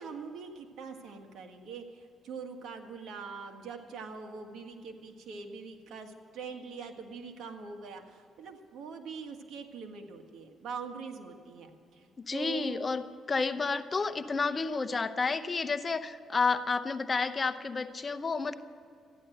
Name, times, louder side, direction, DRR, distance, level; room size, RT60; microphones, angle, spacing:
voice 1, 0.0-12.8, right 5 dB, 75° right, 5 dB, 1.7 m, -43 dB
voice 2, 12.3-13.0 13.3-18.5, left 4 dB, 30° left, 11 dB, 0.8 m, -30 dB
14.5 x 11.0 x 7.8 m, 2.4 s
cardioid pair, 90°, 0 cm